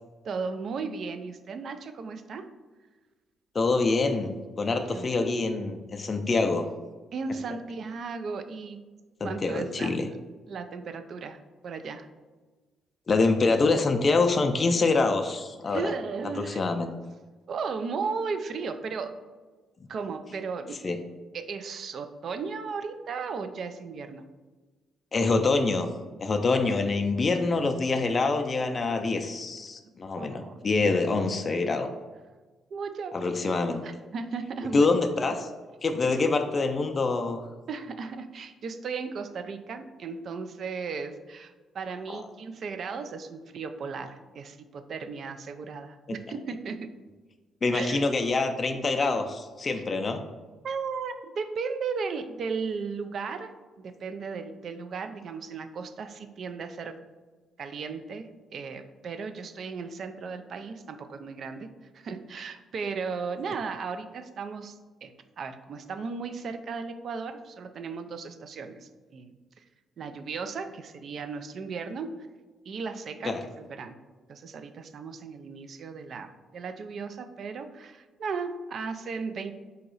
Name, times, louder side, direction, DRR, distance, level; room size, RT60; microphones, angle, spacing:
voice 1, 0.2-2.5 4.8-5.1 7.1-8.8 9.2-10.2 10.5-11.4 11.6-12.1 15.7-16.6 17.5-19.2 19.9-20.9 21.3-24.2 30.1-31.2 32.7-33.5 33.8-35.4 36.0-36.2 37.7-46.9 47.7-48.1 49.0-49.1 50.6-57.0 57.6-61.7 61.9-69.6 70.0-72.1 72.7-74.0 74.3-79.5, right 5 dB, 60° right, 9 dB, 0.4 m, -36 dB
voice 2, 3.5-6.7 9.2-10.1 13.1-15.9 16.5-16.9 20.8-21.0 25.1-25.9 26.2-31.9 33.1-33.8 34.7-35.5 35.8-37.4 42.1-42.2 47.6-50.2 73.2-73.4, left 3 dB, 35° left, 5 dB, 0.3 m, -25 dB
4.0 x 2.8 x 3.8 m, 1.3 s
cardioid pair, 90°, 0 cm